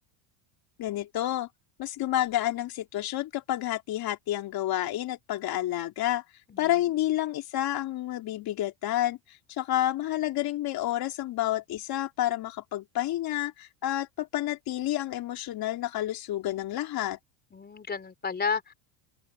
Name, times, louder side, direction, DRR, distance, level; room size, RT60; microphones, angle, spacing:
voice 1, 0.8-1.5 1.8-6.2 6.6-17.2, left 13 dB, 50° left, 3.3 m, -29 dB
voice 2, 6.5-6.9 17.5-18.7, left 5 dB, 20° left, 4.1 m, -32 dB
open air
cardioid pair, 130°, 48 cm